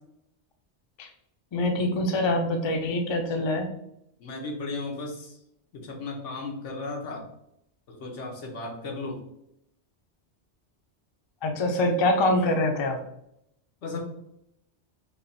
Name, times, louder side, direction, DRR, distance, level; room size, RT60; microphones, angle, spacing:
voice 1, 1.5-3.7 11.4-13.0, left 1 dB, 35° left, 3 dB, 0.4 m, -25 dB
voice 2, 4.2-5.4 5.7-7.2 7.9-9.2 13.8-14.0, left 3 dB, 90° left, 1 dB, 1.3 m, -35 dB
3.5 x 2.4 x 4.0 m, 0.77 s
omnidirectional pair, 1.2 m